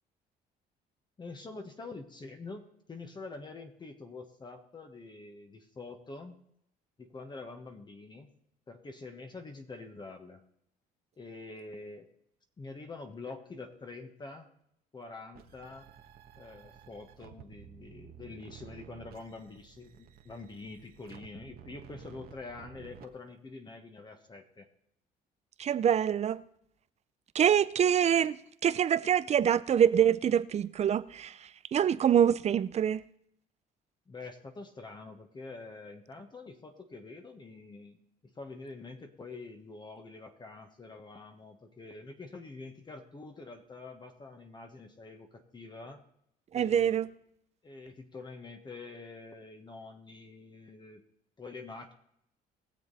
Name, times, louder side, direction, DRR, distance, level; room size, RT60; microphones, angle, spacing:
voice 1, 1.2-6.4 7.0-8.3 8.7-10.4 11.2-12.1 12.6-14.5 14.9-15.9 16.4-24.7 34.1-38.0 38.2-46.0 46.5-47.1 47.6-51.0 51.4-51.9, left 3 dB, 25° left, 1.5 m, -46 dB
sound 1, 15.3-23.1, right 9 dB, 60° right, 1.4 m, -53 dB
voice 2, 25.6-26.4 27.3-31.3 31.7-33.0 46.5-47.1, right 9 dB, 40° right, 0.6 m, -25 dB
20.5 x 7.3 x 4.2 m
cardioid pair, 110°, 17 cm